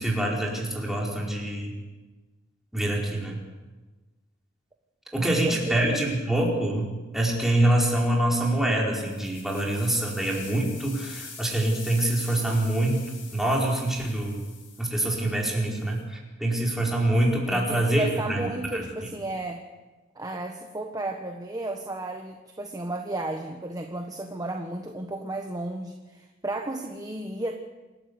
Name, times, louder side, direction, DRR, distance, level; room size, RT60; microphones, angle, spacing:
voice 1, 0.0-1.7 2.7-3.4 5.1-13.0 13.3-14.4 14.8-18.8, right 1 dB, ahead, -3 dB, 4.8 m, -25 dB
voice 2, 5.2-6.0 17.5-19.6 20.1-27.5, right 2 dB, 20° right, 4 dB, 1.3 m, -33 dB
sound 1, 8.9-16.0, left 5 dB, 75° left, 7.1 m, -45 dB
27.5 x 12.5 x 8.3 m, 1.2 s
head